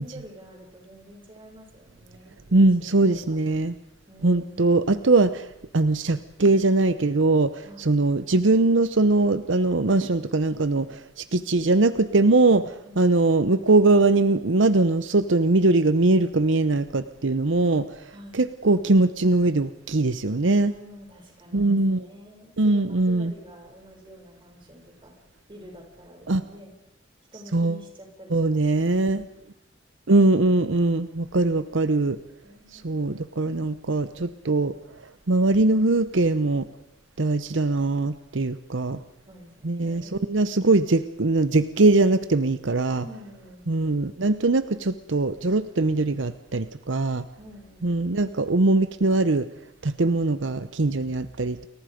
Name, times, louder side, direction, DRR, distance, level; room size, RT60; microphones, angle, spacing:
voice 1, 0.0-3.4 4.1-4.7 7.6-7.9 12.8-13.3 18.1-18.4 20.4-25.1 25.5-26.7 27.3-29.1 32.4-33.2 39.2-40.3 42.9-44.0 47.4-48.0, equal, 25° right, 1 dB, 6.7 m, -47 dB
voice 2, 2.5-3.7 4.2-5.5 5.7-20.7 21.5-22.1 22.6-23.3 26.3-26.4 27.5-27.8 28.3-29.3 30.1-32.2 32.7-34.7 35.3-36.7 37.2-39.0 39.6-43.0 43.7-47.2 47.8-49.5 49.8-51.7, right 2 dB, 75° right, 12 dB, 0.8 m, -21 dB
30.0 x 22.5 x 5.2 m, 0.85 s
head